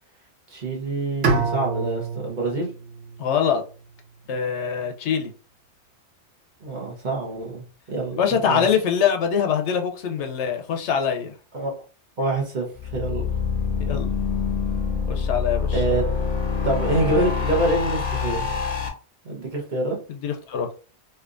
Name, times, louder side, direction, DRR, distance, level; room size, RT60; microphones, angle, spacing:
voice 1, 0.5-2.7 6.6-8.7 11.5-11.7 12.2-13.2 15.7-16.0 16.6-18.4 19.2-20.0, right 2 dB, 45° right, 1.0 m, -26 dB
Bowed string instrument, 1.2-4.3, right 4 dB, 80° right, 1.0 m, -28 dB
voice 2, 3.2-3.6 4.3-5.3 8.2-11.3 13.9-14.1 15.1-15.8 20.1-20.7, left 7 dB, 80° left, 0.9 m, -23 dB
sound 1, 12.8-18.9, left 5 dB, 35° left, 0.7 m, -25 dB
3.3 x 2.6 x 2.5 m
omnidirectional pair, 1.2 m